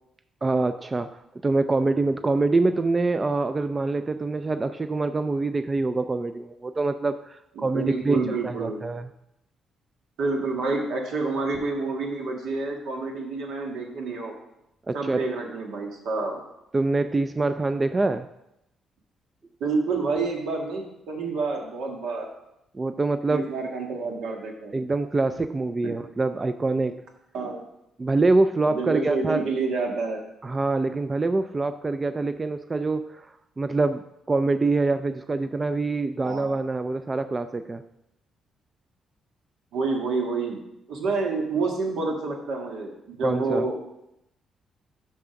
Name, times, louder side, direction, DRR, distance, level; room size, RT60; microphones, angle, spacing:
voice 1, 0.4-1.1 1.4-9.1 14.9-15.2 16.7-18.3 22.7-23.5 24.7-27.0 28.0-29.4 30.4-34.0 34.3-37.8 43.2-43.7, right 3 dB, 25° right, 10 dB, 0.4 m, -25 dB
voice 2, 7.6-8.8 10.2-14.3 14.9-16.4 19.6-22.3 23.3-24.7 25.8-25.9 27.3-27.6 28.7-30.2 36.2-36.5 39.7-40.6 40.9-43.8, right 3 dB, 80° right, 1 dB, 1.7 m, -28 dB
6.1 x 5.7 x 5.8 m, 0.84 s
cardioid pair, 90°, 0 cm